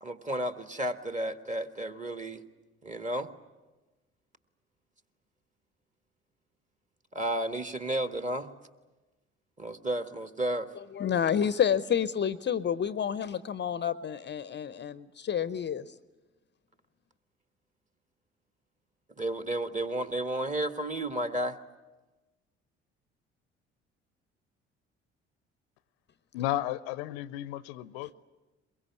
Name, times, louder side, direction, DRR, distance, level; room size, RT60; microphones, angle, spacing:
voice 1, 0.0-2.4 2.8-3.3 7.1-8.5 9.6-10.7 19.2-21.6, right 1 dB, 20° right, 1.7 m, -32 dB
voice 2, 10.8-15.9, left 8 dB, 30° left, 0.8 m, -29 dB
voice 3, 26.3-28.3, left 14 dB, 65° left, 0.7 m, -33 dB
23.0 x 22.0 x 9.5 m
figure-of-eight pair, 50°, 34 cm